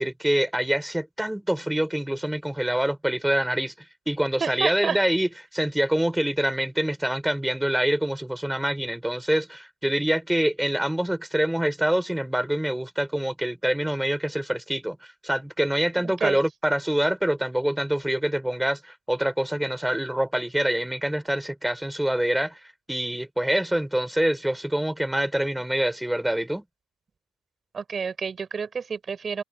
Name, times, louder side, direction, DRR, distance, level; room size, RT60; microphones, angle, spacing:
voice 1, 0.0-3.7 4.1-15.0 15.2-22.6 22.9-26.6, right 1 dB, 5° right, 7.1 m, -25 dB
voice 2, 4.4-5.0 15.9-16.4 27.7-29.4, right 6 dB, 30° right, 6.8 m, -29 dB
figure-of-eight pair, 65°, 0 cm